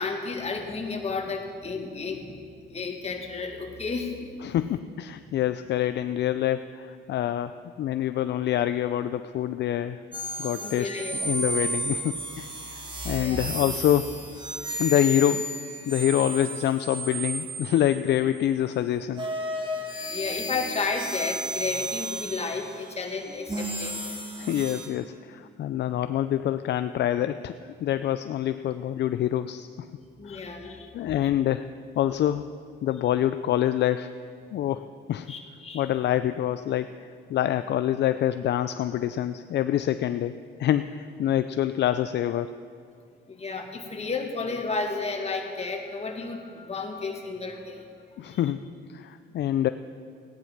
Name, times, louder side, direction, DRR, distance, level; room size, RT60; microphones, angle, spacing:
voice 1, 0.0-2.4 2.7-4.3 10.6-11.3 13.2-13.5 20.1-24.0 30.2-30.9 35.3-35.9 43.3-47.8 48.2-48.4, left 4 dB, 30° left, 3 dB, 1.9 m, -32 dB
voice 2, 4.4-10.0 10.4-10.9 11.2-12.5 13.0-14.2 14.8-15.5 15.9-19.3 24.4-27.5 27.8-29.9 30.2-31.7 32.0-32.5 32.8-34.1 34.5-35.3 35.7-42.6 48.2-49.7, left 11 dB, 60° left, 11 dB, 0.4 m, -26 dB
sound 1, 10.1-18.4 19.1-24.9, right 1 dB, 25° right, 2.1 m, -33 dB
15.5 x 9.7 x 5.9 m, 2.3 s
cardioid pair, 90°, 20 cm